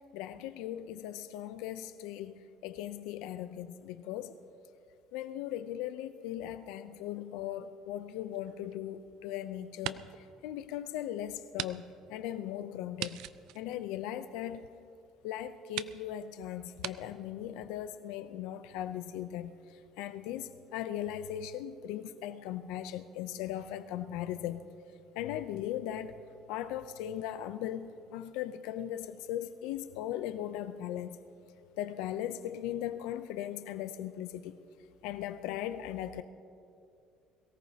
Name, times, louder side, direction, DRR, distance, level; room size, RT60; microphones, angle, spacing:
voice 1, 0.1-4.4 5.1-10.0 10.4-13.2 13.5-14.7 15.2-19.6 20.0-24.6 25.2-26.1 26.5-31.2 31.8-34.6 35.0-36.2, left 11 dB, 85° left, 0.5 m, -38 dB
sound 1, 8.3-9.3 9.7-10.3 10.7-10.8 11.5-11.7 12.0-12.1 13.0-14.5 15.2-15.3 15.7-16.0 16.8-17.0, right 14 dB, 70° right, 0.4 m, -40 dB
22.5 x 17.0 x 2.8 m
cardioid pair, 160°, 0 cm